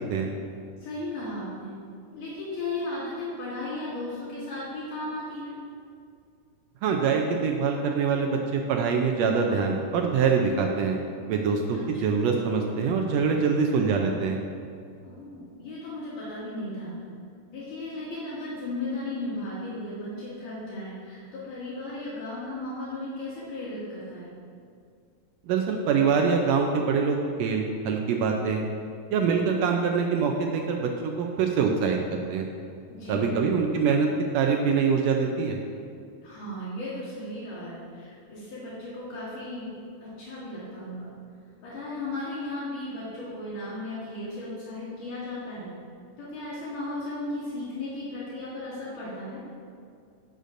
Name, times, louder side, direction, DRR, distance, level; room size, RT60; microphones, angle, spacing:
voice 1, 0.8-1.8 2.1-5.6 11.7-12.3 15.0-17.0 17.5-24.3 32.9-33.4 36.2-39.7 40.0-41.1 41.6-45.7 46.2-49.4, left 2 dB, 70° left, -11 dB, 3.7 m, -35 dB
voice 2, 6.8-11.0 11.3-14.4 25.5-28.6 29.1-32.5 33.1-34.1 34.3-35.6, right 5 dB, 90° right, 2 dB, 1.5 m, -24 dB
16.5 x 6.6 x 2.6 m, 2.3 s
omnidirectional pair, 3.7 m